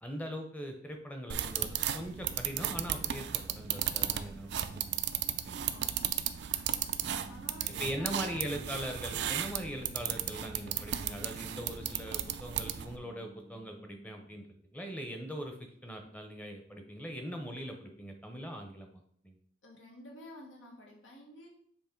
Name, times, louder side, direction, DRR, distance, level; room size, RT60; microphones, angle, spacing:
voice 1, 0.0-5.0 5.4-5.6 7.8-14.5 14.7-18.9 19.2-19.4, equal, 10° left, 4 dB, 0.7 m, -41 dB
sound 1, 1.3-13.0, right 10 dB, 60° right, 0.4 m, -35 dB
sound 2, 2.5-14.4, right 1 dB, 70° left, 2.2 m, -55 dB
voice 2, 5.7-6.1 7.3-8.7 19.6-21.5, left 1 dB, 90° left, -1 dB, 1.6 m, -51 dB
7.2 x 3.0 x 4.4 m, 0.65 s
head